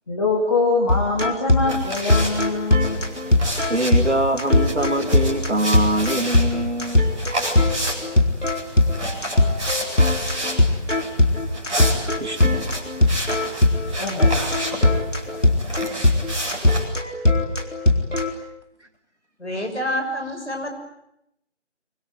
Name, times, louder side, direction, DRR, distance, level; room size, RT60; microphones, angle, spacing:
voice 1, 0.1-3.0 13.9-14.3, left 3 dB, 25° left, -2 dB, 2.9 m, -23 dB
sound 1, 0.9-18.3, left 2 dB, 85° left, 4.5 m, -20 dB
sound 2, 1.7-16.8, right 1 dB, 5° right, 3.2 m, -31 dB
voice 2, 3.7-7.1 11.7-12.8, right 1 dB, 70° right, 5 dB, 2.7 m, -24 dB
voice 3, 19.4-20.8, equal, 65° left, 4 dB, 6.9 m, -27 dB
25.5 x 24.0 x 9.2 m, 0.80 s
figure-of-eight pair, 165°, 36 cm